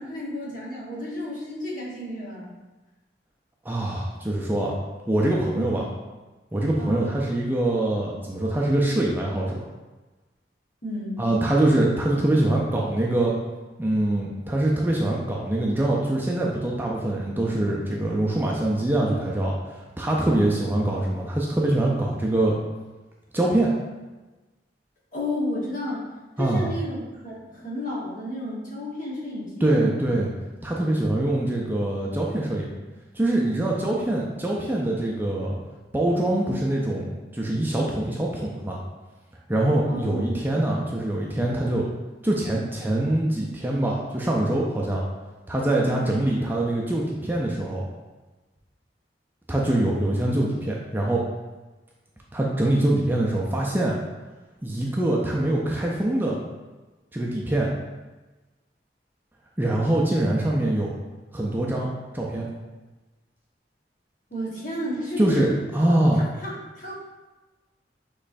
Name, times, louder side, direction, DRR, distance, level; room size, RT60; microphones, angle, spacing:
voice 1, 0.0-2.5 5.5-5.9 6.8-7.1 10.8-11.3 25.1-26.1 26.4-30.1 39.9-40.6 45.8-46.2 64.3-65.4 66.4-66.9, equal, 45° left, -6 dB, 1.3 m, -32 dB
voice 2, 3.6-4.8 5.1-5.8 6.5-9.6 11.2-13.3 13.8-19.5 20.0-22.5 23.3-23.7 26.4-26.7 29.6-30.3 30.6-32.7 33.1-35.6 35.9-38.8 39.5-41.9 42.2-45.0 45.5-47.8 49.5-51.2 52.3-54.0 54.6-56.4 57.1-57.7 59.6-60.9 61.3-61.9 62.1-62.5 65.2-66.2, right 1 dB, 10° right, -3 dB, 0.4 m, -24 dB
6.4 x 3.1 x 2.6 m, 1.2 s
head